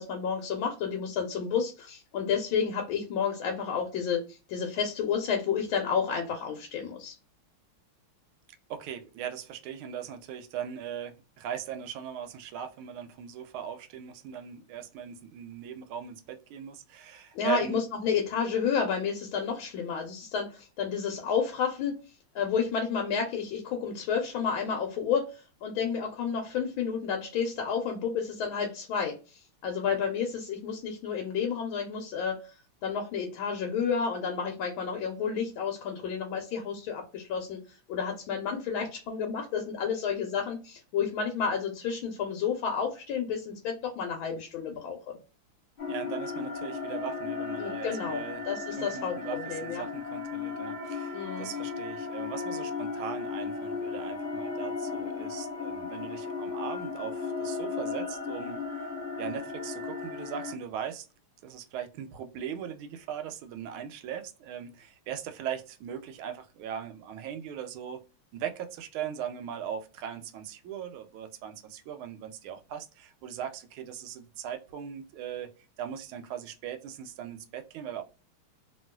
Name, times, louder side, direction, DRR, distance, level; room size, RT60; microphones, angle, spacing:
voice 1, 0.0-7.1 17.3-21.9 22.3-32.5 32.8-45.2 47.6-49.8 51.1-51.5, left 6 dB, 75° left, 1.4 m, -31 dB
voice 2, 8.7-17.8 45.9-48.5 48.8-58.6 59.2-61.0 61.4-68.0 68.3-75.5 75.8-78.0, right 9 dB, 80° right, 1.4 m, -39 dB
sound 1, 45.8-60.5, left 4 dB, 35° left, 1.2 m, -35 dB
3.0 x 2.9 x 2.2 m
omnidirectional pair, 2.4 m